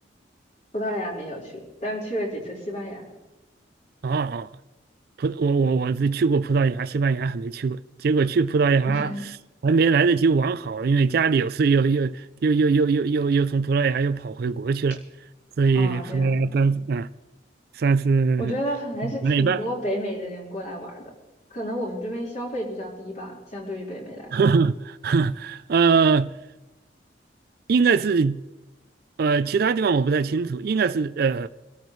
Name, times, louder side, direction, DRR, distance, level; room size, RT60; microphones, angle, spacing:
voice 1, 0.7-3.1 8.8-9.2 15.7-16.4 18.4-21.0 21.5-24.4, equal, 40° left, 4.4 m, -31 dB
voice 2, 4.0-4.5 5.2-9.1 9.6-15.0 15.6-17.1 17.8-18.5 19.0-19.6 24.3-26.3 27.7-28.4 29.2-31.5, right 4 dB, 55° right, 0.4 m, -21 dB
25.5 x 13.5 x 3.2 m
head